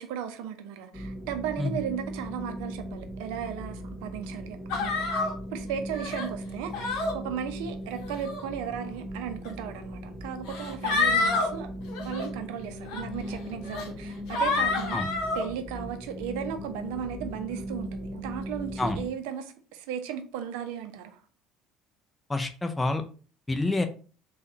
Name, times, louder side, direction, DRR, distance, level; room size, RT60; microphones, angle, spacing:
voice 1, 0.0-11.7 12.0-21.2, right 8 dB, 75° right, 7 dB, 0.5 m, -36 dB
sound 1, 0.9-19.1, equal, 30° left, 1.2 m, -39 dB
sound 2, 4.7-5.3 5.9-6.3 6.7-7.1 8.0-8.4 9.4-9.5 10.5-11.5 11.9-12.2 12.9-13.0 13.6-13.9 14.3-15.4, left 3 dB, 70° left, 0.8 m, -28 dB
voice 2, 22.3-23.0 23.5-23.9, left 2 dB, 15° left, 6 dB, 0.5 m, -27 dB
3.5 x 2.3 x 2.7 m, 0.38 s
hypercardioid pair, 65°, 0 cm